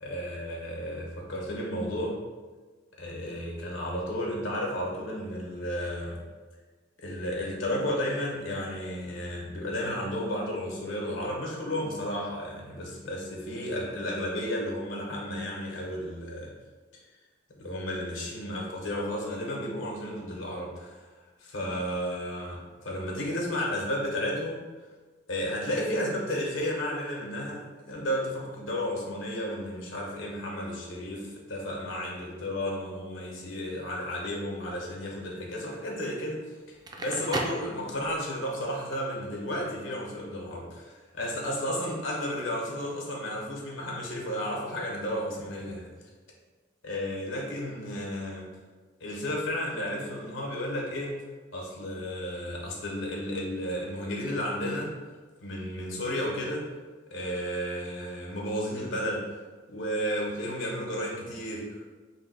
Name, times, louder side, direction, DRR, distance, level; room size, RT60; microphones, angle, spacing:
voice 1, 0.0-2.1 3.0-6.2 7.0-16.5 17.6-21.1 21.4-24.6 25.3-31.2 31.5-36.4 37.0-45.9 46.8-48.5 49.0-51.2 51.5-54.9 55.4-56.6 57.1-59.3 59.7-61.9, equal, 85° left, -2 dB, 1.0 m, -33 dB
Crackle, 36.7-38.4, right 1 dB, 20° right, 0.3 m, -35 dB
3.3 x 2.7 x 4.6 m, 1.3 s
head